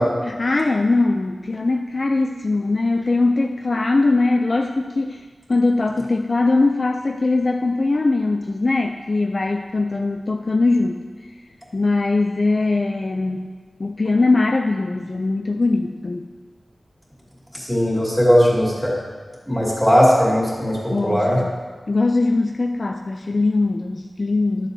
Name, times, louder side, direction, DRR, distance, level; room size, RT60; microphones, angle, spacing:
voice 1, 0.2-5.2 5.5-11.0 11.7-13.5 13.8-16.3 20.9-21.5 21.9-24.7, left 3 dB, 45° left, 3 dB, 0.3 m, -21 dB
voice 2, 17.5-18.9 19.5-20.8 21.0-21.4, equal, ahead, -6 dB, 2.5 m, -17 dB
11.5 x 7.2 x 2.7 m, 1.4 s
wide cardioid pair, 105°, 0 cm